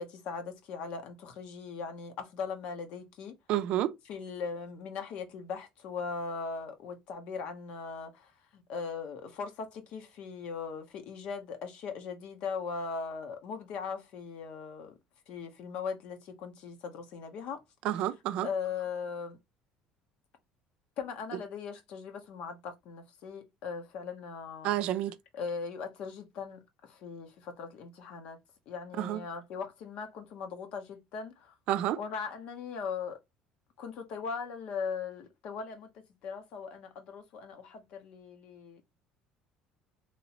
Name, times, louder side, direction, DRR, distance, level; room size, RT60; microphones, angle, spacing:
voice 1, 0.0-3.3 4.1-15.0 15.3-17.6 18.4-19.4 21.0-24.7 25.3-28.4 28.7-31.5 32.0-33.2 33.8-35.9 36.2-38.8, left 5 dB, 65° left, 0.9 m, -39 dB
voice 2, 3.5-3.9 17.8-18.5 24.6-25.2 29.0-29.2 31.7-32.0, right 13 dB, 65° right, 0.4 m, -29 dB
3.0 x 2.9 x 2.9 m
cardioid pair, 115°, 2 cm